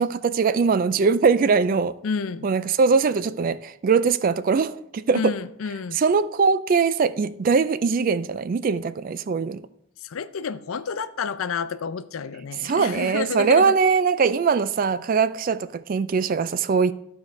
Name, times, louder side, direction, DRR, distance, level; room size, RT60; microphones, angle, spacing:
voice 1, 0.0-1.9 2.4-5.4 6.0-9.6 12.6-16.9, right 5 dB, 40° right, 0.3 m, -21 dB
voice 2, 2.0-2.5 5.1-6.0 10.0-13.8, left 5 dB, 85° left, 0.5 m, -30 dB
14.0 x 4.8 x 3.2 m
head